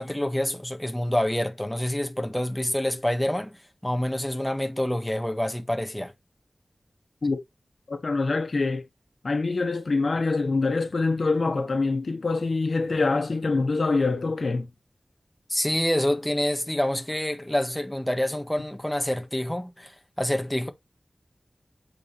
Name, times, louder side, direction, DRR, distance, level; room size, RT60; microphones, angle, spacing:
voice 1, 0.0-6.1 15.5-20.7, left 1 dB, 10° left, 1.4 m, -27 dB
voice 2, 7.9-8.8 9.2-14.7, left 3 dB, 70° left, 1.2 m, -25 dB
8.2 x 5.3 x 3.3 m
wide cardioid pair, 60°, 0 cm